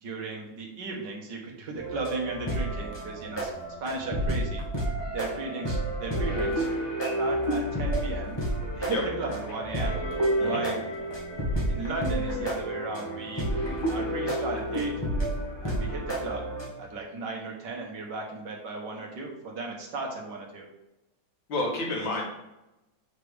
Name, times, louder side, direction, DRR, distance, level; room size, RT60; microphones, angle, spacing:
voice 1, 0.0-3.5 3.8-4.6 5.1-6.7 7.0-8.4 8.8-10.0 10.4-10.8 11.7-13.5 13.9-14.9 15.6-16.5 16.8-20.7, right 3 dB, 65° right, 0 dB, 2.0 m, -35 dB
sound 1, 1.7-16.7, right 1 dB, 15° left, 1.8 m, -30 dB
voice 2, 21.5-22.2, left 2 dB, 85° left, -3 dB, 2.6 m, -29 dB
6.8 x 5.8 x 3.5 m, 0.92 s
omnidirectional pair, 2.1 m